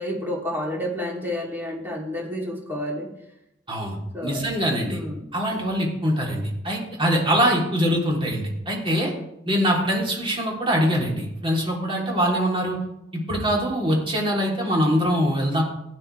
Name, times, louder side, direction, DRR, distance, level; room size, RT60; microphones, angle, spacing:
voice 1, 0.0-3.1 4.1-4.4 4.8-5.2, left 1 dB, 10° right, -3 dB, 3.3 m, -30 dB
voice 2, 4.2-5.0 5.3-9.1 9.4-12.8 13.1-15.6, equal, 25° right, -2 dB, 3.4 m, -23 dB
15.5 x 10.0 x 3.4 m, 0.81 s
head